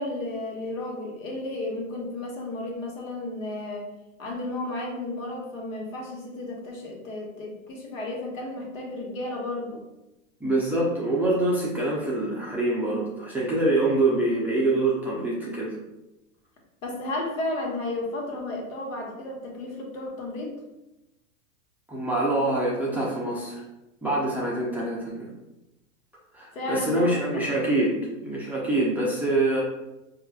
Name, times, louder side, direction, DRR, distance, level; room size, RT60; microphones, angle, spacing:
voice 1, 0.0-3.9 4.2-9.8 16.8-20.6 26.5-27.4, left 2 dB, 85° left, -1 dB, 1.2 m, -33 dB
voice 2, 10.4-15.7 21.9-23.6 24.0-25.3 26.3-28.0 28.2-29.6, right 2 dB, 5° right, -6 dB, 0.4 m, -25 dB
4.5 x 2.4 x 2.3 m, 0.95 s
hypercardioid pair, 125°, 39 cm